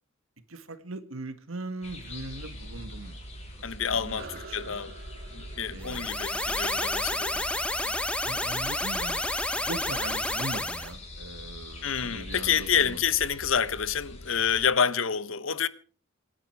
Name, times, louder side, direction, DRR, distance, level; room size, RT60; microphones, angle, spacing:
voice 1, 0.5-3.2 3.9-4.8 5.7-6.1 7.8-9.2 9.5-13.0, right 2 dB, 85° right, 1.9 m, -40 dB
sound 1, 1.8-14.6, left 1 dB, 35° left, 6.5 m, -43 dB
voice 2, 3.6-5.0 5.3-7.4 11.8-15.7, left 7 dB, 70° left, 1.0 m, -28 dB
sound 2, 4.1-9.0, right 4 dB, 50° right, 2.7 m, -49 dB
sound 3, 5.8-10.9, left 1 dB, 5° left, 1.1 m, -30 dB
27.0 x 10.0 x 4.7 m
head